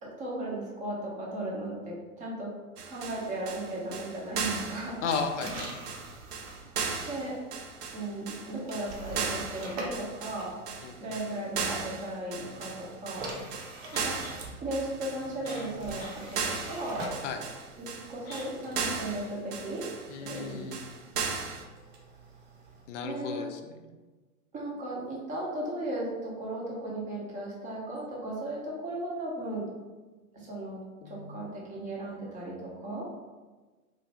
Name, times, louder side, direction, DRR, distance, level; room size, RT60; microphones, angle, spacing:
voice 1, 0.0-2.5 2.9-5.0 7.1-7.4 7.9-10.5 11.0-13.3 13.9-14.2 14.6-17.1 17.8-19.9 20.2-20.6 23.0-23.5 24.5-29.7 30.3-30.8 31.1-33.1, right 1 dB, 15° right, -4 dB, 0.6 m, -36 dB
sound 1, 2.8-21.6, right 5 dB, 85° right, 0.6 m, -36 dB
sound 2, 4.4-11.3 12.4-22.9, right 2 dB, 50° right, 0.8 m, -45 dB
voice 2, 5.0-5.9 10.8-11.1 17.2-17.4 20.1-20.8 22.9-23.6 31.0-31.4, left 5 dB, 55° left, 5 dB, 0.5 m, -35 dB
sound 3, 13.9-14.4 15.2-15.3 15.4-16.2 16.5-16.6 18.3-18.5 18.8-18.9, left 1 dB, 20° left, 0.7 m, -44 dB
3.1 x 2.5 x 2.8 m, 1.3 s
hypercardioid pair, 115°, 44 cm